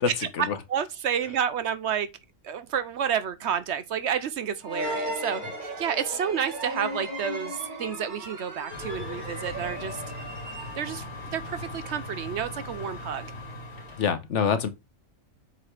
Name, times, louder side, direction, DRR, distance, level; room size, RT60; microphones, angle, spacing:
voice 1, 0.2-2.1 2.4-10.0 10.8-11.0 11.3-13.3, right 8 dB, 65° right, 0.9 m, -30 dB
sound 1, 4.6-11.1, right 1 dB, 40° right, 1.6 m, -36 dB
sound 2, 8.7-14.1, left 2 dB, 80° left, 3.2 m, -39 dB
voice 2, 14.0-14.7, left 6 dB, 65° left, 1.2 m, -25 dB
7.6 x 4.1 x 3.3 m
omnidirectional pair, 1.4 m